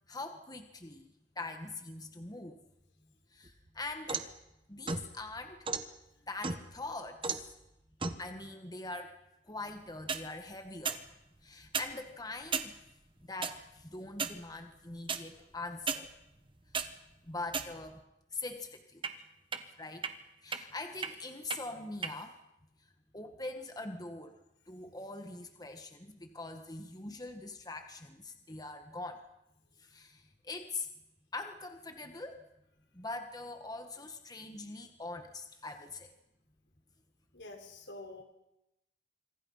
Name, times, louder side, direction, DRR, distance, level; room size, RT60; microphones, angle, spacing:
voice 1, 0.1-2.6 3.3-4.3 4.7-5.7 6.3-7.4 8.2-9.2 9.4-11.0 11.4-12.8 13.2-16.1 17.2-18.0 18.3-19.0 19.8-20.1 20.4-22.4 22.8-24.4 24.7-29.2 29.8-30.9 31.3-32.5 32.9-36.1, left 2 dB, 20° left, 6 dB, 1.6 m, -43 dB
sound 1, 3.5-4.4 4.9-5.9 6.4-6.9 7.2-7.5 8.0-8.2 9.9-10.2 10.9-11.0 11.6-11.9 12.5-12.7 13.4-13.5 14.2-14.4 15.1-15.2 15.9-16.0 16.5-16.9 17.5-18.0 19.0-19.1 19.5-19.6 20.0-20.1 20.5-20.6 21.0-21.1 21.5-21.6 22.0-22.1, right 5 dB, 30° right, 1.4 m, -34 dB
voice 2, 37.3-38.2, left 2 dB, 80° left, 5 dB, 4.4 m, -48 dB
27.0 x 25.5 x 5.7 m, 0.88 s
head